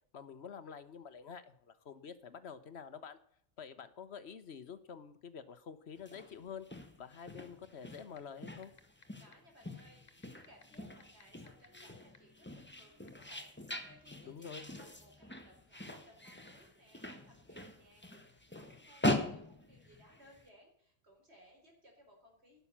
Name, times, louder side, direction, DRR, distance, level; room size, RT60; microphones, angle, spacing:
voice 1, 0.1-3.2 3.6-8.7 14.3-14.7, left 6 dB, 55° left, 13 dB, 1.2 m, -48 dB
sound 1, 6.0-20.4, left 1 dB, 10° left, 1.3 m, -42 dB
sound 2, 8.2-8.3 8.6-9.0 9.3-9.4 10.1-11.8 12.1-12.2 13.1-13.2, left 4 dB, 35° left, 1.2 m, -57 dB
voice 2, 9.2-22.6, equal, 55° right, 1 dB, 4.7 m, -63 dB
12.0 x 7.0 x 8.5 m, 0.64 s
omnidirectional pair, 1.3 m